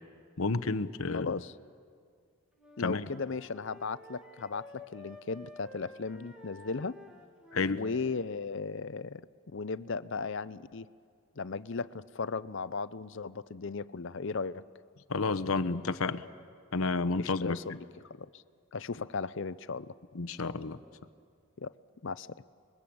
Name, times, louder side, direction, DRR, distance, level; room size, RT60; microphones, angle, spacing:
voice 1, 0.4-1.3 2.8-3.1 7.5-7.8 15.1-16.2 16.7-17.8 20.1-20.8, left 3 dB, 75° left, 13 dB, 0.9 m, -30 dB
voice 2, 1.1-1.5 2.8-7.0 7.7-9.2 9.5-10.9 11.4-14.6 17.2-17.7 18.0-18.4 18.7-19.9 21.6-21.7 22.0-22.4, left 4 dB, 55° left, 16 dB, 0.6 m, -36 dB
Wind instrument woodwind instrument, 2.5-8.2, left 2 dB, 5° right, 1.9 m, -52 dB
30.0 x 21.5 x 8.7 m, 2.2 s
head